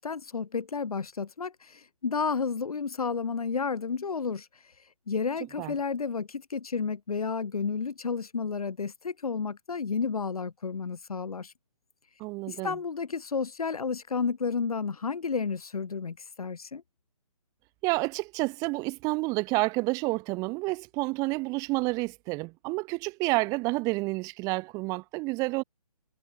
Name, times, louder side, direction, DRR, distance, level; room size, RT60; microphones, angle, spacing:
voice 1, 0.0-4.5 5.1-11.5 12.5-16.8, left 5 dB, 70° left, 1.5 m, -31 dB
voice 2, 12.2-12.8 17.8-25.6, right 25 dB, 20° right, 1.6 m, -29 dB
figure-of-eight pair, 145°, 20 cm